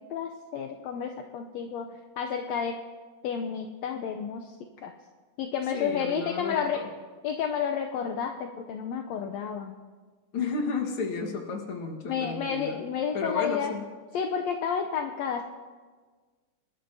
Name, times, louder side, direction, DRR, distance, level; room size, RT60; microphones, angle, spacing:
voice 1, 0.0-1.9 2.2-2.8 3.2-4.5 4.8-4.9 5.4-6.8 7.2-9.7 12.0-13.7 14.1-15.4, left 7 dB, 75° left, 3 dB, 1.7 m, -31 dB
voice 2, 5.7-6.9 10.3-12.8 13.1-13.9, left 4 dB, 50° left, 1 dB, 2.0 m, -32 dB
26.5 x 12.0 x 2.8 m, 1.5 s
omnidirectional pair, 3.6 m